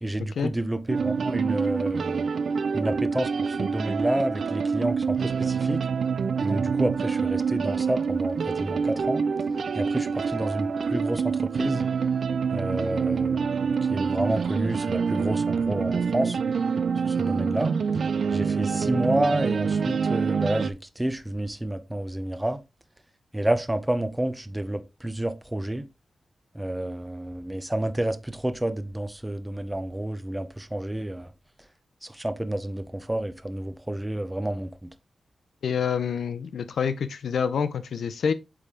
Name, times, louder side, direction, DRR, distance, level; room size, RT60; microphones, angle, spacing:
voice 1, 0.0-2.3 2.7-5.8 6.4-9.2 9.7-11.8 12.5-16.4 17.0-17.7 18.3-22.6 23.3-25.9 26.5-31.3 32.0-34.9, right 1 dB, 10° right, 0.7 m, -29 dB
sound 1, 0.9-20.7, right 5 dB, 70° right, 0.4 m, -26 dB
voice 2, 35.6-38.3, left 7 dB, 85° left, 0.5 m, -27 dB
8.4 x 3.4 x 3.7 m
cardioid pair, 85°, 0 cm